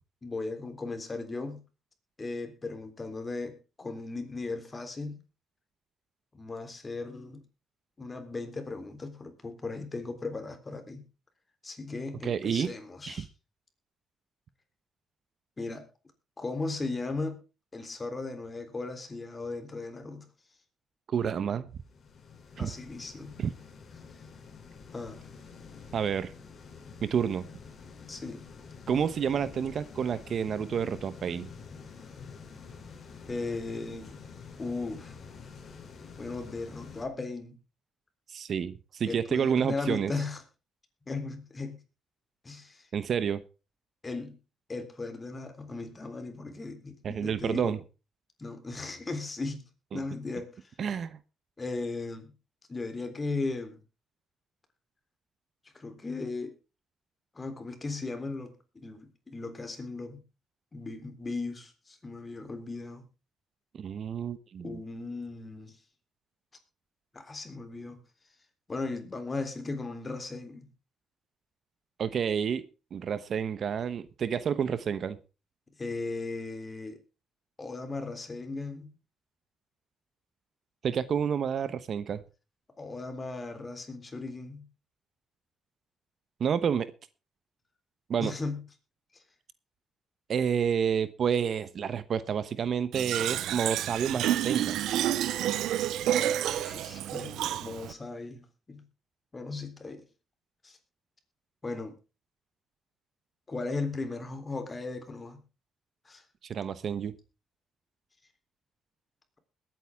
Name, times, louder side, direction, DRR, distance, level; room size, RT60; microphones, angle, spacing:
voice 1, 0.2-1.6 2.2-5.2 6.3-7.4 8.0-11.1 11.6-13.3 15.6-15.9 16.4-17.4 17.7-20.3 22.6-23.3 24.9-25.2 28.1-28.4 33.3-34.2 34.6-35.2 36.2-37.6 39.0-40.4 41.1-41.8 42.4-42.9 44.0-44.4 44.7-47.8 48.4-49.6 49.9-50.5 51.6-52.3 52.7-53.8 55.7-56.5 57.4-60.2 60.7-63.0 64.6-65.8 67.1-68.0 68.7-70.7 75.8-77.0 77.6-78.9 82.8-84.7 88.2-88.6 96.2-98.8 99.3-100.1 100.6-100.8 101.6-102.0 103.5-105.4 106.1-106.2, left 3 dB, 25° left, 3.5 m, -37 dB
voice 2, 12.2-12.7 13.1-13.2 21.1-21.7 22.6-22.7 23.4-23.5 25.9-26.3 27.0-27.4 28.9-31.5 38.3-40.1 42.9-43.4 47.0-47.8 49.9-50.0 50.8-51.2 63.7-64.8 72.0-72.7 72.9-75.2 80.8-82.2 86.4-86.9 88.1-88.3 90.3-94.8 106.5-107.1, right 7 dB, 55° right, 1.0 m, -29 dB
sound 1, 21.7-37.0, left 5 dB, 50° left, 3.4 m, -48 dB
Fill (with liquid), 92.9-97.9, right 12 dB, 85° right, 0.6 m, -29 dB
21.0 x 9.2 x 3.6 m
cardioid pair, 90°, 0 cm